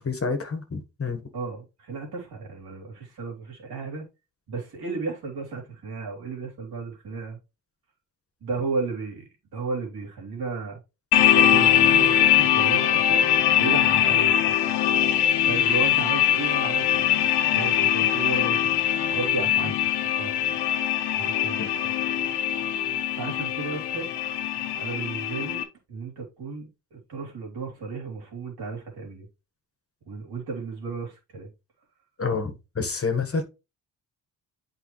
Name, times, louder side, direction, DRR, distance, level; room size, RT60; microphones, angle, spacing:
voice 1, 0.0-1.2 21.6-21.7 32.2-33.4, left 4 dB, 35° left, 1.6 m, -28 dB
voice 2, 1.3-4.0 4.5-7.4 8.4-10.8 11.3-13.3 13.6-14.5 15.4-17.1 17.5-18.8 19.1-20.6 21.1-21.7 23.1-24.1 24.8-29.3 30.1-31.5, right 4 dB, 70° right, 3.5 m, -34 dB
sound 1, 11.1-25.6, left 11 dB, 90° left, 0.9 m, -22 dB
8.2 x 4.8 x 3.2 m
cardioid pair, 65°, 39 cm